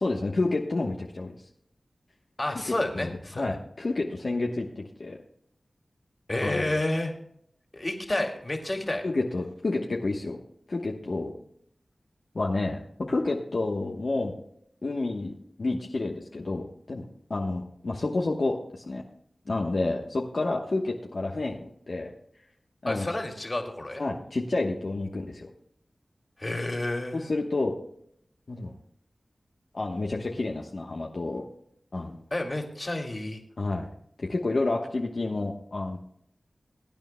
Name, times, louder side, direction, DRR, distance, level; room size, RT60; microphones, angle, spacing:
voice 1, 0.0-1.3 2.5-5.2 6.4-6.6 9.0-10.4 10.7-11.3 12.3-12.8 13.1-14.3 14.8-17.0 17.3-19.0 19.5-22.1 22.8-23.1 24.0-25.5 27.1-27.8 28.5-28.7 29.7-31.4 31.9-32.2 33.6-33.9 34.3-36.0, left 2 dB, 70° left, -1 dB, 1.1 m, -29 dB
voice 2, 2.4-3.5 6.3-7.1 7.7-9.0 22.9-24.0 26.4-27.3 32.3-33.4, left 1 dB, 40° left, 2 dB, 2.4 m, -30 dB
21.0 x 9.1 x 2.2 m, 0.69 s
cardioid pair, 40°, 0 cm